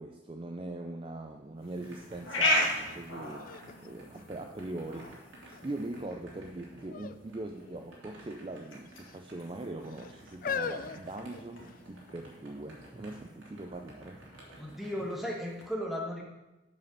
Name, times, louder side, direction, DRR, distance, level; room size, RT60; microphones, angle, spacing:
voice 1, 0.0-3.5 3.8-14.2 15.0-15.1, right 2 dB, 25° right, 4 dB, 0.4 m, -41 dB
sound 1, 1.3-15.3, right 1 dB, 80° right, 2.7 m, -54 dB
sound 2, 1.6-15.7, left 1 dB, 90° left, 2.0 m, -38 dB
sound 3, 2.9-3.0 3.4-4.9 5.5-6.0 6.9-7.2 7.5-7.7 8.5-9.2 9.9-11.9 12.7-12.8, left 6 dB, 45° left, 0.4 m, -40 dB
voice 2, 14.5-16.2, equal, ahead, -2 dB, 1.4 m, -35 dB
7.7 x 5.2 x 6.7 m, 1.0 s
head